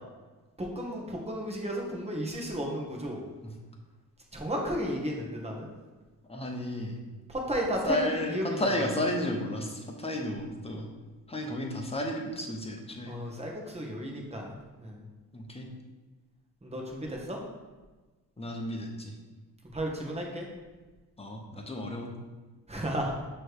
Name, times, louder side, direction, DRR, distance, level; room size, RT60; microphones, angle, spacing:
voice 1, 0.6-3.2 4.3-5.6 7.3-8.8 13.1-15.0 16.6-17.4 19.7-20.4 22.7-23.1, equal, 15° right, -1 dB, 1.5 m, -33 dB
voice 2, 6.3-7.0 7.8-10.9 11.3-13.1 15.3-15.7 18.4-19.1 21.2-22.1, left 1 dB, 15° left, 1 dB, 1.1 m, -32 dB
6.1 x 3.4 x 4.7 m, 1.3 s
cardioid pair, 75°, 37 cm